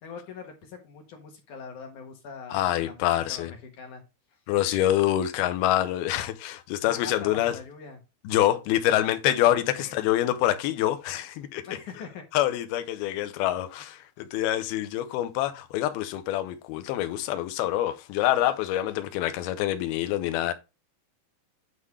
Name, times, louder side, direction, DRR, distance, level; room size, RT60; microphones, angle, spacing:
voice 1, 0.0-4.0 6.8-8.0 9.7-10.0 11.6-12.2, left 5 dB, 60° left, 2.3 m, -42 dB
voice 2, 2.5-3.5 4.5-7.6 8.2-11.6 12.3-20.5, left 13 dB, 80° left, 2.4 m, -26 dB
9.8 x 3.8 x 4.8 m
omnidirectional pair, 5.0 m